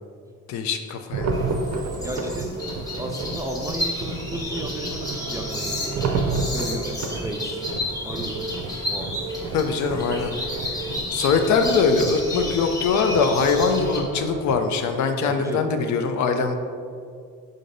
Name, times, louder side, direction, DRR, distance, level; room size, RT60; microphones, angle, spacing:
voice 1, 0.5-1.3 9.5-10.3 11.1-16.5, left 5 dB, 70° left, 6 dB, 0.5 m, -22 dB
sound 1, 1.1-14.5, right 3 dB, 60° right, 0.5 m, -31 dB
sound 2, 1.3-14.0, left 1 dB, 10° left, 1.1 m, -32 dB
voice 2, 2.0-2.6 2.9-6.2 6.5-7.6 8.0-9.1 15.3-15.7, right 1 dB, 10° right, 2 dB, 0.4 m, -34 dB
5.1 x 3.8 x 2.6 m, 2.2 s
cardioid pair, 90°, 30 cm